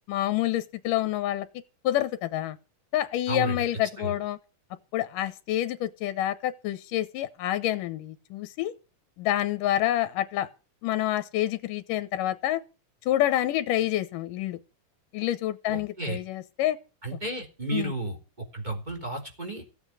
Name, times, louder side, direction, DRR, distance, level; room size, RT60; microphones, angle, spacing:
voice 1, 0.1-1.5 1.8-2.6 2.9-4.4 4.9-8.7 9.2-10.5 10.8-12.6 13.1-14.6 15.1-16.8 17.7-17.9, left 13 dB, 90° left, 2.6 m, -27 dB
voice 2, 3.3-3.6 4.0-4.1 15.7-16.2 17.0-18.2 18.5-19.6, right 2 dB, 15° right, 3.3 m, -32 dB
16.0 x 8.3 x 7.9 m
omnidirectional pair, 3.7 m